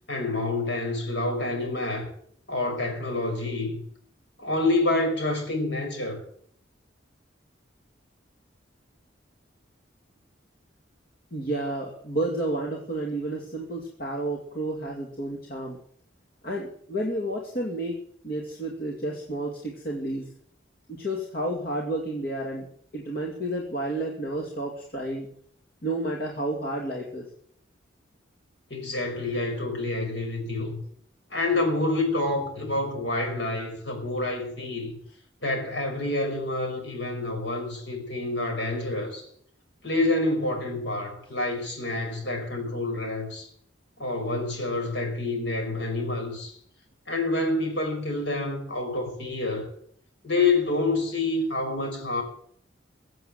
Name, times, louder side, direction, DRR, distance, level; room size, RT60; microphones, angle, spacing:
voice 1, 0.1-2.1 2.5-3.8 4.4-6.2 28.7-30.8 31.3-34.9 35.4-39.2 39.8-43.5 44.0-46.5 47.1-49.7 50.2-52.2, left 2 dB, 65° left, 5.7 m, -28 dB
voice 2, 11.3-15.8 16.4-18.0 18.2-20.3 20.9-22.7 22.9-25.3 25.8-27.2, right 1 dB, 50° left, 2.5 m, -31 dB
22.5 x 7.8 x 7.8 m
head